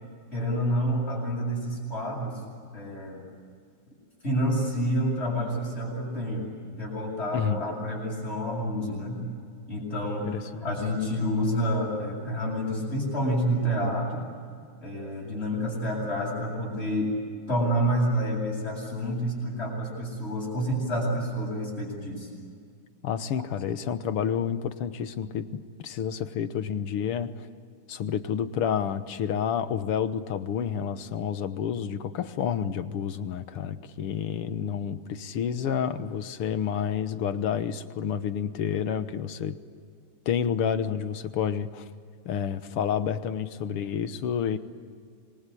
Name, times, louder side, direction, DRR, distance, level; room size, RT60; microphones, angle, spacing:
voice 1, 0.3-2.4 2.7-3.2 4.2-6.5 6.8-9.2 9.7-14.2 14.8-17.1 17.5-22.3, equal, 30° left, -8 dB, 7.8 m, -28 dB
voice 2, 10.3-10.6 23.0-25.5 25.8-27.5 27.9-39.6 40.3-41.8 42.3-44.6, left 8 dB, 90° left, 11 dB, 2.1 m, -29 dB
27.0 x 23.5 x 8.5 m, 2.2 s
omnidirectional pair, 2.4 m